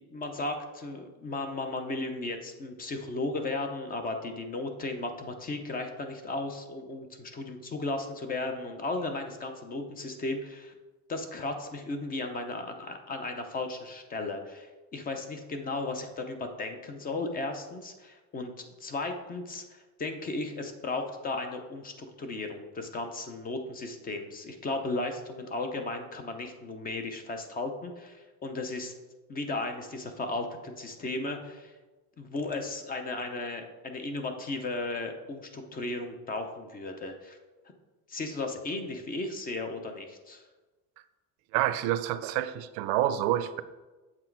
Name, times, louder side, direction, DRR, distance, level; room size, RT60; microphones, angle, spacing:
voice 1, 0.1-10.7 11.1-28.9 29.3-31.7 32.2-37.4 38.1-40.4, left 2 dB, 25° left, 0.6 m, -35 dB
voice 2, 41.5-43.6, right 13 dB, 85° right, 0.7 m, -28 dB
7.8 x 6.1 x 4.6 m
cardioid pair, 170°, 38 cm